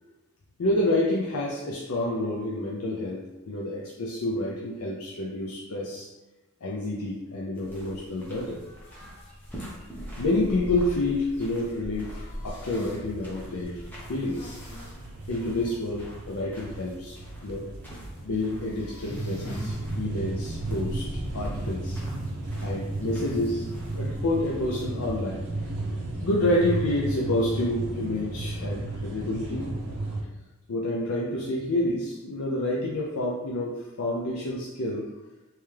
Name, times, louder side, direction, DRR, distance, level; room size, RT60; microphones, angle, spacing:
voice 1, 0.6-3.2 3.5-6.1 6.6-9.3 10.2-13.8 14.1-14.6 15.3-17.7 18.2-22.0 22.6-23.7 23.9-25.4 26.2-29.9 30.7-35.1, left 1 dB, 70° left, -4 dB, 0.5 m, -29 dB
sound 1, 7.5-27.1, equal, 10° left, 0.8 m, -43 dB
sound 2, 12.2-30.2, right 2 dB, 80° right, 0.6 m, -34 dB
sound 3, 12.5-13.0 14.2-15.0 15.4-15.5 15.9-16.0 18.6-19.8 20.2-20.3 21.9-22.2, left 1 dB, 50° left, 1.0 m, -44 dB
3.4 x 3.0 x 3.2 m, 1.1 s
head